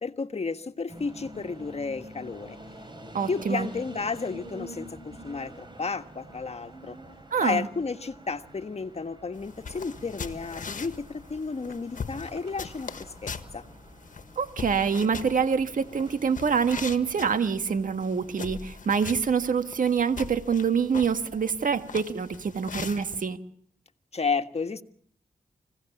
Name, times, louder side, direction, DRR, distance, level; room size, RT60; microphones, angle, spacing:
voice 1, 0.0-2.6 3.3-7.0 7.4-13.6 24.1-24.8, left 4 dB, 45° left, 8 dB, 1.6 m, -32 dB
sound 1, 0.9-18.8, right 1 dB, 30° right, 7.3 m, -48 dB
voice 2, 3.1-3.7 7.3-7.7 14.4-23.4, right 6 dB, 65° right, 8 dB, 1.6 m, -26 dB
sound 2, 9.4-23.2, left 5 dB, 60° left, 1.6 m, -41 dB
26.0 x 17.0 x 7.2 m, 0.63 s
cardioid pair, 50°, 15 cm